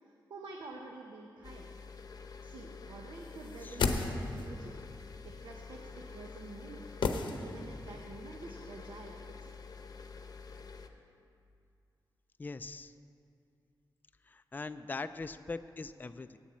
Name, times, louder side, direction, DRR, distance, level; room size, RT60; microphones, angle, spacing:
voice 1, 0.0-1.7 2.2-4.7 5.2-6.8 7.4-9.5, right 3 dB, 75° right, 1 dB, 0.9 m, -48 dB
sound 1, 1.4-10.9, left 5 dB, 50° left, 0.8 m, -48 dB
sound 2, 3.4-4.6 7.0-7.9 8.2-8.3, left 4 dB, 85° left, 0.7 m, -33 dB
voice 2, 12.4-12.9 14.3-16.4, left 3 dB, 25° left, 11 dB, 0.3 m, -41 dB
8.8 x 7.2 x 8.6 m, 2.5 s
wide cardioid pair, 85°, 8 cm